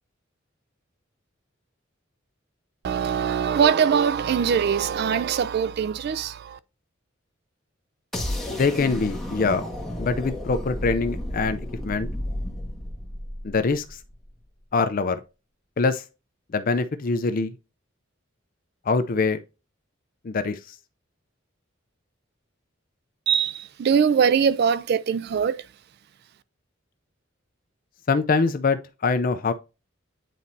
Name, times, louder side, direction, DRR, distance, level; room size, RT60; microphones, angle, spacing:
voice 1, 2.8-6.6 23.3-25.7, right 7 dB, 55° right, 0.3 m, -22 dB
sound 1, 8.1-14.1, left 1 dB, ahead, 1.8 m, -32 dB
voice 2, 8.5-9.6 10.0-12.1 13.4-14.0 14.7-15.2 15.8-16.0 16.5-17.5 18.9-19.4 20.2-20.8 28.1-29.5, left 4 dB, 45° left, 0.5 m, -24 dB
9.1 x 4.1 x 2.6 m
head